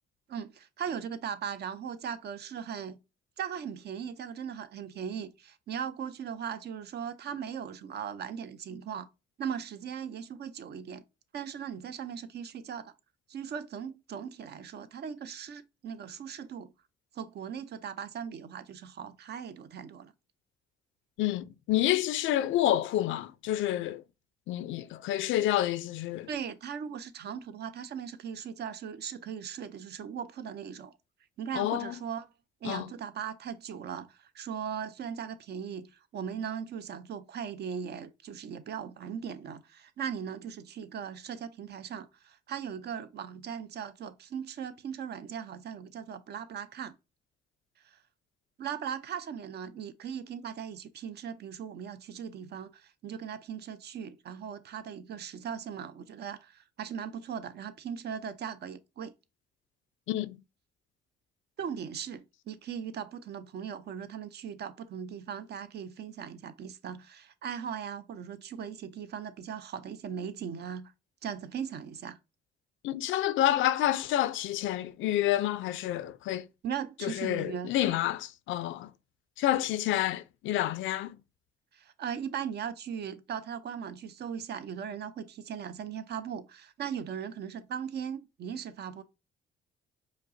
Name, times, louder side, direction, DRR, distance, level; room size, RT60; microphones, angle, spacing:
voice 1, 0.3-3.0 3.4-9.1 9.4-11.0 11.3-12.9 13.3-16.7 17.1-20.1 26.3-30.9 31.4-32.3 32.6-47.0 47.8-48.0 48.6-59.1 61.6-70.9 71.2-72.2 76.6-77.7 81.7-89.0, right 8 dB, 55° right, 0.5 m, -38 dB
voice 2, 21.2-24.0 24.5-26.3 31.5-32.0 32.6-32.9 60.1-60.4 72.8-76.5 77.0-78.9 79.4-81.2, left 13 dB, 80° left, 0.4 m, -29 dB
5.0 x 2.0 x 2.5 m
cardioid pair, 90°, 20 cm